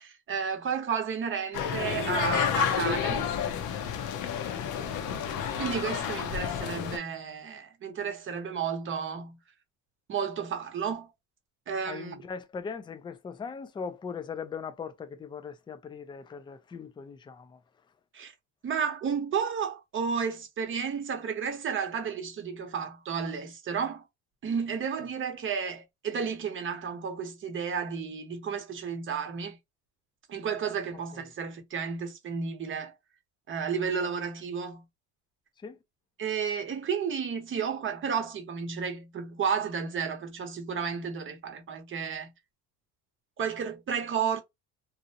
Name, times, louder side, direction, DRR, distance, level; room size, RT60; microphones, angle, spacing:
voice 1, 0.0-3.3 5.6-9.4 10.1-11.1 11.7-12.1 18.1-18.3 18.6-24.0 24.4-29.6 30.3-32.9 33.5-34.8 36.2-42.3 43.4-44.4, right 6 dB, 35° right, 0.8 m, -32 dB
sound 1, 1.5-7.0, left 8 dB, 60° left, 0.6 m, -30 dB
voice 2, 4.6-5.0 11.9-17.6 31.1-31.2 35.6-35.8, left 6 dB, 15° left, 0.3 m, -40 dB
2.5 x 2.0 x 2.7 m
cardioid pair, 125°, 35 cm